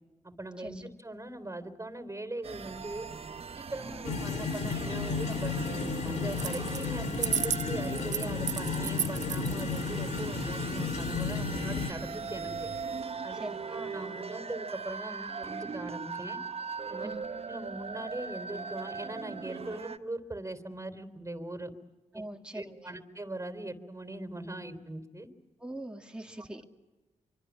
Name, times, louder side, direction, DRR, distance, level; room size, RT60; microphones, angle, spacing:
voice 1, 0.2-3.1 3.5-5.5 6.0-12.7 13.2-13.4 13.7-16.4 16.9-17.1 17.4-21.7 22.1-22.2 22.5-25.3, right 1 dB, 25° right, 10 dB, 3.6 m, -40 dB
sound 1, 2.4-20.0, right 5 dB, 50° right, 1.3 m, -40 dB
sound 2, 4.0-11.9, left 4 dB, 65° left, 2.0 m, -33 dB
sound 3, 6.3-6.9 7.1-9.8, right 8 dB, 70° right, 0.8 m, -32 dB
voice 2, 13.3-14.2 17.0-17.2 22.1-22.9 25.6-26.7, right 1 dB, 5° right, 2 dB, 2.6 m, -43 dB
25.5 x 24.5 x 7.3 m, 1.2 s
supercardioid pair, 50°, 13 cm